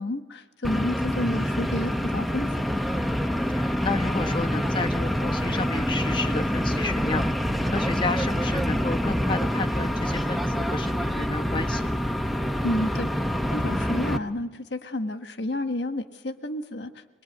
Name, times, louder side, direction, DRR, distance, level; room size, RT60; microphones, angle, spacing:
voice 1, 0.0-2.5 12.6-13.1 13.5-16.9, left 1 dB, 75° left, 7 dB, 1.4 m, -30 dB
sound 1, 0.6-14.2, equal, ahead, 0.8 m, -26 dB
voice 2, 3.5-11.9, left 3 dB, 25° left, 3 dB, 1.2 m, -32 dB
23.5 x 23.5 x 9.4 m, 1.2 s
head